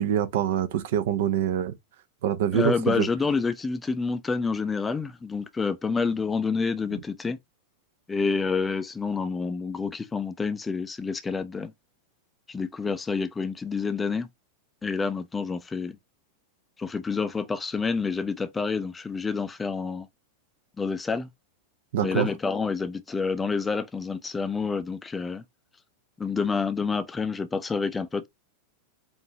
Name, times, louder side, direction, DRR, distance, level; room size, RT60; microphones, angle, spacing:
voice 1, 0.0-1.7 2.2-3.1 21.9-22.3, right 10 dB, 55° right, 0.6 m, -25 dB
voice 2, 2.5-7.4 8.1-11.7 12.5-14.3 14.8-16.0 16.8-20.1 20.8-21.3 22.0-25.4 26.2-28.3, left 4 dB, 15° left, 0.5 m, -28 dB
4.7 x 2.5 x 2.9 m
figure-of-eight pair, 90°, 0 cm